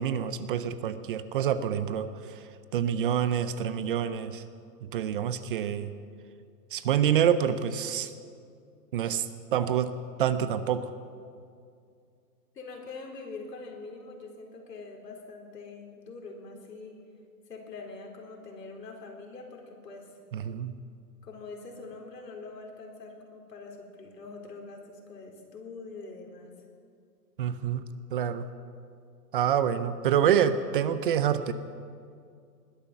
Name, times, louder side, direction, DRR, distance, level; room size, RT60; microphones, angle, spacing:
voice 1, 0.0-4.4 4.8-5.9 6.7-8.1 8.9-10.9 20.3-20.8 27.4-28.5 29.3-31.5, right 9 dB, 35° right, 13 dB, 0.6 m, -27 dB
voice 2, 12.5-17.0 17.5-20.1 21.2-26.5, left 3 dB, 85° left, 0 dB, 4.1 m, -44 dB
20.5 x 11.0 x 5.9 m, 2.3 s
hypercardioid pair, 145°, 48 cm